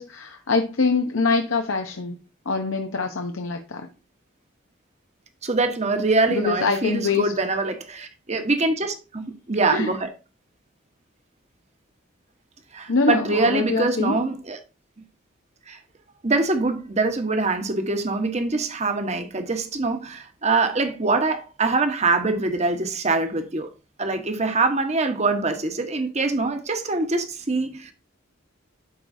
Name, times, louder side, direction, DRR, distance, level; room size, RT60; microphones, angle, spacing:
voice 1, 0.0-2.2 2.5-3.9 6.3-7.3 9.7-9.9 12.9-14.3, left 4 dB, 90° left, 0.8 m, -24 dB
voice 2, 5.4-10.1 12.7-14.6 15.7-15.8 16.2-23.7 24.0-27.9, right 3 dB, 35° right, 1.1 m, -24 dB
12.0 x 4.8 x 2.7 m
head